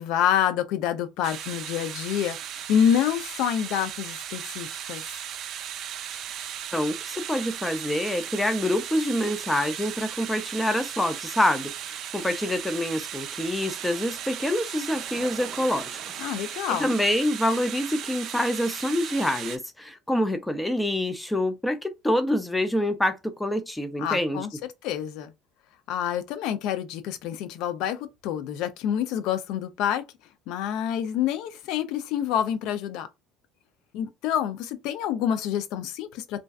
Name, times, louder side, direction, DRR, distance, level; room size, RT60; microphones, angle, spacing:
voice 1, 0.0-5.0 16.2-16.9 24.0-24.5 24.8-25.3 25.9-30.0 30.5-33.1 33.9-36.4, left 9 dB, 70° left, 0.4 m, -27 dB
sound 1, 1.2-19.6, right 10 dB, 55° right, 0.3 m, -36 dB
voice 2, 6.7-16.2 16.5-24.5, left 1 dB, 10° left, 0.4 m, -26 dB
2.5 x 2.2 x 2.3 m
supercardioid pair, 105°, 0 cm